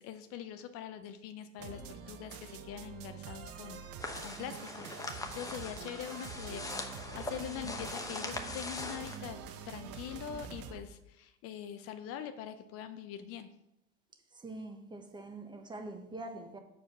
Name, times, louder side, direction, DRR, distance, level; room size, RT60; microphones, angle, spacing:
voice 1, 0.0-9.4 9.7-13.5, left 9 dB, 45° left, 9 dB, 0.7 m, -44 dB
sound 1, 1.6-10.8, right 6 dB, 45° right, 1.0 m, -46 dB
sound 2, 4.0-9.2, left 2 dB, 10° left, 0.9 m, -41 dB
voice 2, 14.3-16.6, right 2 dB, 15° right, 4 dB, 1.1 m, -44 dB
7.2 x 4.7 x 5.9 m, 0.84 s
supercardioid pair, 120°, 33 cm